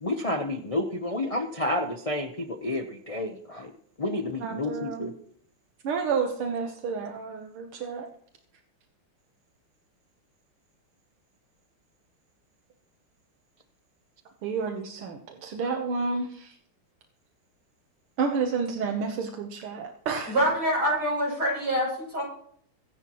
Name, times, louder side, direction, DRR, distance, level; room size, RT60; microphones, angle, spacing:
voice 1, 0.0-3.7 4.0-5.1, left 1 dB, 45° left, 4 dB, 0.4 m, -30 dB
voice 2, 4.4-5.1 5.8-8.1 14.4-16.5 18.2-20.4, right 5 dB, 80° right, 3 dB, 2.0 m, -30 dB
voice 3, 20.3-22.2, equal, 50° right, -4 dB, 8.0 m, -25 dB
24.0 x 10.0 x 3.1 m, 0.64 s
omnidirectional pair, 2.3 m